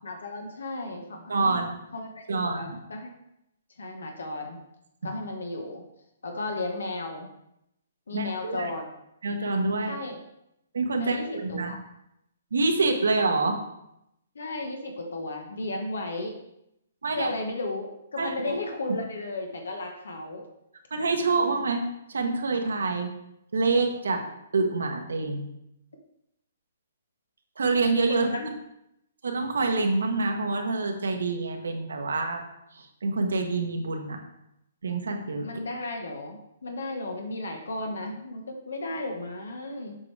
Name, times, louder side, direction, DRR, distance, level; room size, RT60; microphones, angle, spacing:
voice 1, 0.0-1.6 1.9-3.1 3.8-4.6 5.0-5.8 6.2-7.3 8.1-8.9 9.9-10.2 11.0-11.8 14.3-16.4 17.1-20.4 28.1-28.5 35.4-40.0, left 2 dB, 90° left, 3 dB, 1.1 m, -34 dB
voice 2, 1.3-1.7 2.3-2.8 8.1-8.7 9.2-10.0 10.7-11.7 12.5-13.6 17.0-17.3 18.2-18.3 20.9-21.8 22.1-23.1 23.5-24.2 24.5-25.5 27.6-28.3 29.2-32.4 32.7-34.2 34.8-35.5, right 3 dB, 90° right, 4 dB, 1.1 m, -26 dB
7.6 x 4.7 x 3.3 m, 0.82 s
hypercardioid pair, 150°, 0 cm